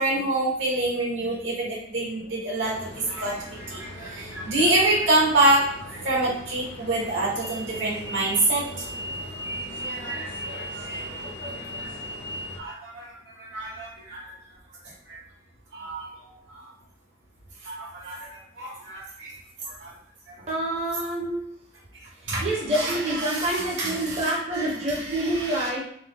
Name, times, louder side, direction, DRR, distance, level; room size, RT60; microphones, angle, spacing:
voice 1, 0.0-2.7 3.1-8.9 9.4-10.9 11.6-11.9 12.5-14.2 15.1-15.2 15.7-16.7 17.6-19.3 19.6-19.9 20.3-20.5 20.9-21.0 22.3-25.7, right 2 dB, 85° right, -6 dB, 1.4 m, -27 dB
sound 1, 2.6-12.6, equal, 60° left, 0.7 m, -37 dB
voice 2, 20.5-21.5 22.4-25.8, right 1 dB, 35° right, -4 dB, 0.6 m, -27 dB
3.6 x 2.0 x 3.4 m, 0.69 s
head